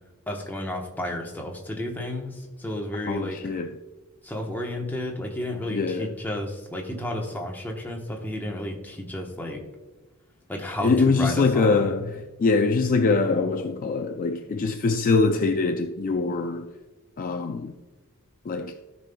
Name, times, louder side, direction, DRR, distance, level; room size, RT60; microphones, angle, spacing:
voice 1, 0.3-3.4 4.2-9.6 10.5-11.9, left 1 dB, 10° left, 1.1 m, -32 dB
voice 2, 3.1-3.8 5.7-6.1 10.8-16.7 17.2-17.8 18.4-18.8, left 4 dB, 40° left, 0.4 m, -23 dB
16.0 x 5.4 x 2.3 m
head